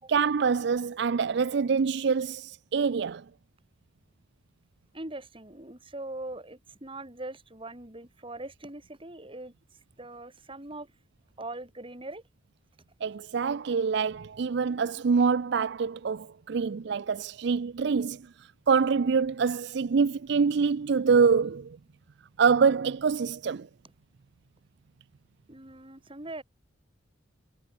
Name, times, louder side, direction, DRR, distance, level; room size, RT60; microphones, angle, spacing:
voice 1, 0.1-3.2 13.0-18.2 18.7-21.8 22.4-23.7, right 5 dB, 65° right, 0.4 m, -25 dB
voice 2, 4.9-9.5 10.0-10.9 11.4-12.2 25.5-26.4, right 2 dB, 30° right, 4.4 m, -41 dB
head